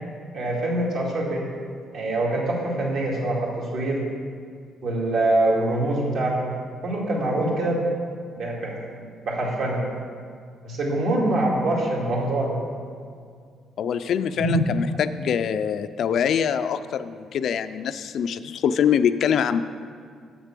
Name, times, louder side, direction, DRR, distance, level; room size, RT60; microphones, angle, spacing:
voice 1, 0.3-1.4 1.9-4.0 4.8-6.5 6.8-7.9 8.4-9.8 10.6-12.6 14.3-14.5, right 1 dB, 60° right, -2 dB, 2.2 m, -24 dB
voice 2, 13.8-19.6, left 8 dB, 55° left, 12 dB, 0.4 m, -24 dB
7.5 x 6.9 x 7.4 m, 2.1 s
cardioid pair, 145°, 0 cm